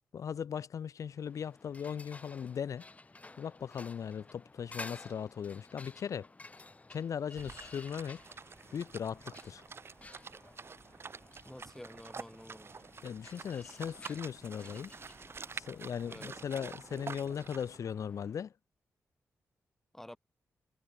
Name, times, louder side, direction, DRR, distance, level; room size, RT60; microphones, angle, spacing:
voice 1, 0.1-2.8 3.4-6.3 6.9-8.2 8.7-9.6 13.0-14.9 15.5-18.5, left 7 dB, 70° left, 1.4 m, -38 dB
sound 1, 1.0-18.5, left 2 dB, 25° left, 2.8 m, -54 dB
sound 2, 7.3-17.8, right 5 dB, 45° right, 1.6 m, -48 dB
voice 2, 11.4-12.7 16.1-16.4 19.9-20.2, left 1 dB, 5° left, 6.9 m, -49 dB
cardioid pair, 90°, 6 cm